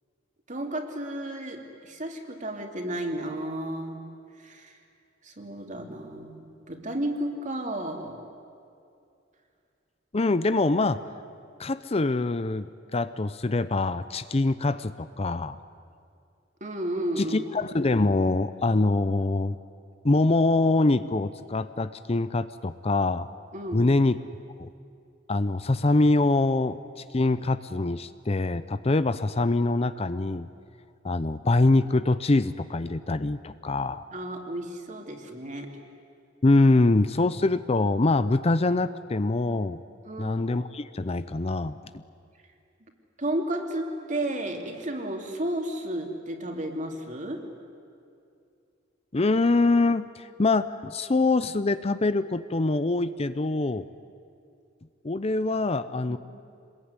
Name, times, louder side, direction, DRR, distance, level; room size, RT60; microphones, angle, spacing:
voice 1, 0.5-4.0 4.4-4.8 5.2-8.2 16.6-17.4 23.5-23.8 34.1-35.7 40.0-40.4 43.2-47.4 56.1-56.2, right 1 dB, 40° right, 3 dB, 3.0 m, -32 dB
voice 2, 10.1-11.0 11.6-12.7 12.9-15.6 17.2-19.6 20.0-23.3 23.7-24.2 24.6-24.7 25.3-26.8 27.1-30.5 31.0-34.0 36.4-39.8 40.2-42.0 49.1-53.9 55.0-56.2, left 2 dB, 35° left, 13 dB, 0.6 m, -24 dB
26.5 x 21.0 x 9.7 m, 2.5 s
head